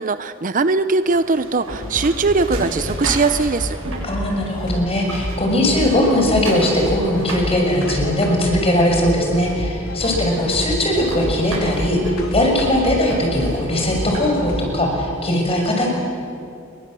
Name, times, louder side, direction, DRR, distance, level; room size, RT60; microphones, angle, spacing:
voice 1, 0.0-3.8 10.1-10.2, right 3 dB, 40° right, 12 dB, 0.7 m, -20 dB
sound 1, 1.0-4.7 5.0-8.7 9.4-9.5 9.9-10.0 10.3-14.6, right 1 dB, 75° right, 7.7 m, -34 dB
sound 2, 1.7-15.0, equal, 80° left, 3.9 m, -29 dB
voice 2, 4.0-15.9, left 1 dB, 30° left, 1 dB, 6.1 m, -19 dB
29.5 x 23.0 x 7.6 m, 2.5 s
head